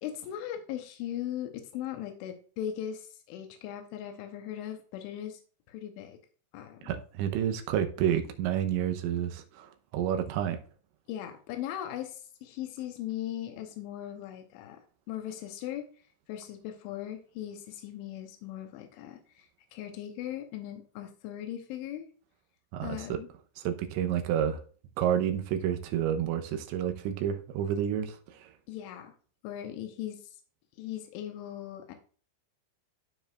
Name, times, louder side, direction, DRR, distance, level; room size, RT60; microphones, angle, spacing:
voice 1, 0.0-5.4 5.7-6.2 6.5-6.9 11.1-15.9 16.3-22.1 22.8-23.3 28.7-29.1 29.4-30.3 30.8-32.0, left 11 dB, 90° left, 3.3 m, -39 dB
voice 2, 6.8-10.6 22.7-23.2 23.6-24.6 25.0-28.5, right 10 dB, 80° right, 3.1 m, -30 dB
14.5 x 4.9 x 2.4 m
omnidirectional pair, 5.4 m